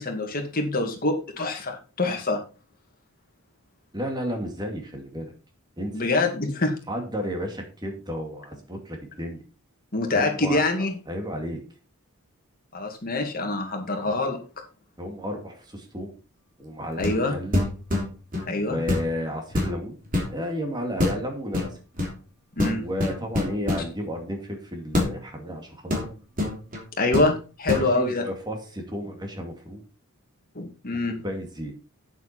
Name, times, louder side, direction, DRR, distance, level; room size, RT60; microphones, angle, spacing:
voice 1, 0.0-2.4 5.9-6.7 9.9-10.9 12.7-14.4 17.0-17.3 18.5-18.8 22.6-22.9 27.0-28.3 30.6-31.2, left 2 dB, 40° left, 3 dB, 2.2 m, -25 dB
voice 2, 3.9-5.3 5.8-6.0 6.9-9.4 10.1-10.6 11.1-11.6 15.0-16.2 16.6-17.6 18.6-20.0 20.3-21.8 22.8-26.1 27.7-29.8 30.9-31.7, equal, 20° right, 3 dB, 2.4 m, -32 dB
sound 1, 17.0-17.2 17.5-18.5 18.9-19.1 19.5-20.3 21.0-21.2 21.5-22.1 22.6-23.9 24.9-25.1 25.9-26.8 27.1-27.3 27.7-27.9, left 2 dB, 40° right, 3.2 m, -26 dB
9.0 x 7.7 x 4.4 m, 0.35 s
head